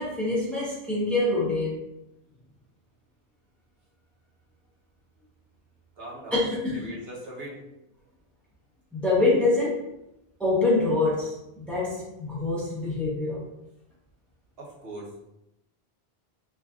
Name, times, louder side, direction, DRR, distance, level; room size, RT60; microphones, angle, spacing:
voice 1, 0.0-1.8 6.3-7.0 8.9-9.8 10.4-11.4 11.7-13.5, left 2 dB, ahead, -7 dB, 0.7 m, -25 dB
voice 2, 6.0-6.4 6.7-7.6 14.6-15.1, right 1 dB, 75° right, -6 dB, 1.1 m, -40 dB
3.2 x 2.4 x 2.3 m, 0.88 s
omnidirectional pair, 1.0 m